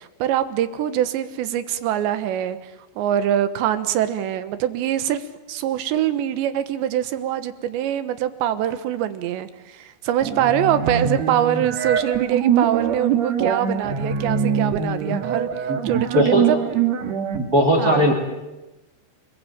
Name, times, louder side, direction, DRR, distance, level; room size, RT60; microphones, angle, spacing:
voice 1, 0.0-15.5 15.8-16.8 17.8-18.1, right 11 dB, 90° right, 11 dB, 3.6 m, -24 dB
sound 1, 10.2-17.4, right 7 dB, 55° right, 2.0 m, -23 dB
voice 2, 16.1-16.5 17.4-18.1, equal, 25° right, 0 dB, 3.3 m, -18 dB
30.0 x 21.0 x 9.0 m, 1.0 s
omnidirectional pair, 5.0 m